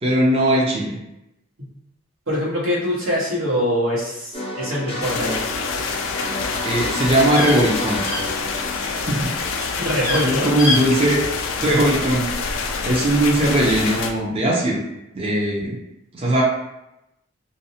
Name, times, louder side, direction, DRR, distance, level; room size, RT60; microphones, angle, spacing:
voice 1, 0.0-1.0 6.6-8.0 8.7-9.3 10.2-11.2 11.6-12.3 12.8-14.8 15.1-15.8 16.1-16.4, right 1 dB, 30° right, -3 dB, 0.4 m, -19 dB
voice 2, 2.3-5.5 9.7-10.5, equal, 85° right, -6 dB, 1.1 m, -23 dB
sound 1, 4.3-10.1, left 1 dB, 30° left, 0.5 m, -31 dB
sound 2, 5.0-14.1, left 5 dB, 90° left, 0.3 m, -27 dB
sound 3, 6.6-8.9 9.2-9.6 9.9-10.2 10.6-10.8 11.1-11.2, left 2 dB, 65° right, 1.3 m, -27 dB
2.6 x 2.0 x 2.7 m, 0.89 s
head